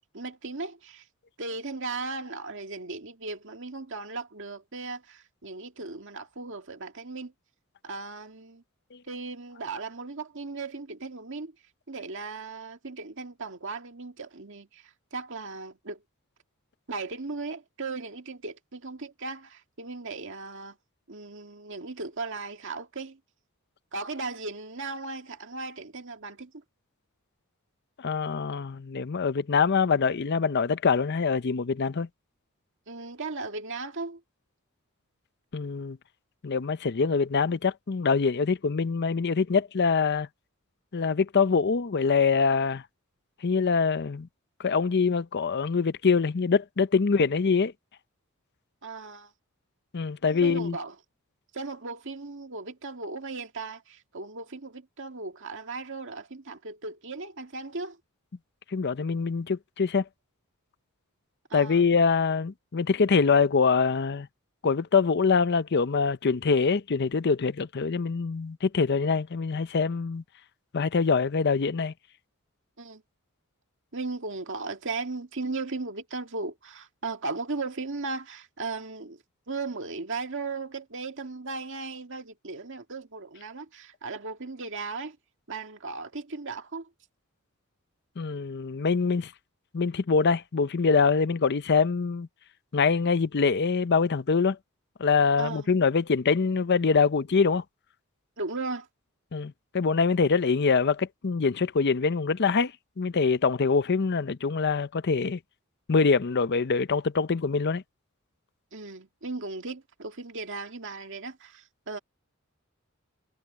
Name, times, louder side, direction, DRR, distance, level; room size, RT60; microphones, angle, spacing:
voice 1, 0.1-1.1 1.4-7.3 7.8-8.6 9.1-11.5 11.9-16.0 16.9-20.8 21.1-23.2 23.9-26.6 32.9-34.2 48.8-49.3 50.4-51.0 51.5-58.0 61.5-61.9 72.8-73.0 73.9-85.2 85.5-86.9 95.4-95.7 98.4-98.9 108.7-112.0, right 3 dB, 60° right, 2.0 m, -37 dB
voice 2, 28.0-32.1 35.5-36.0 36.4-40.3 40.9-42.8 43.4-44.3 44.6-47.7 49.9-50.8 58.7-60.0 61.5-64.3 64.6-70.2 70.7-71.9 88.2-89.3 89.7-92.3 92.7-94.6 95.0-97.6 99.3-102.7 103.0-105.4 105.9-107.8, left 5 dB, 50° left, 0.6 m, -24 dB
head